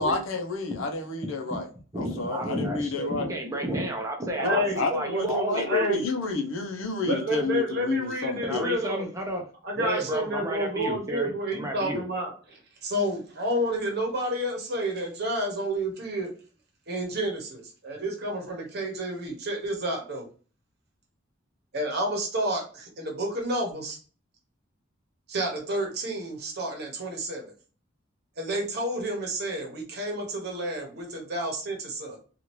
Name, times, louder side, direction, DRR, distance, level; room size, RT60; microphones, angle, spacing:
voice 1, 0.0-1.7 2.0-3.3 4.4-8.7, left 3 dB, 80° left, 4 dB, 0.6 m, -29 dB
voice 2, 1.9-5.9 8.4-9.4 9.8-12.0, right 1 dB, 15° right, 1 dB, 0.7 m, -31 dB
voice 3, 4.4-5.2 5.6-6.0 7.1-9.1 9.6-16.3 16.9-20.3 21.7-24.0 25.3-27.5 28.4-32.2, right 1 dB, 55° right, 1 dB, 1.0 m, -30 dB
2.8 x 2.5 x 3.0 m, 0.38 s
head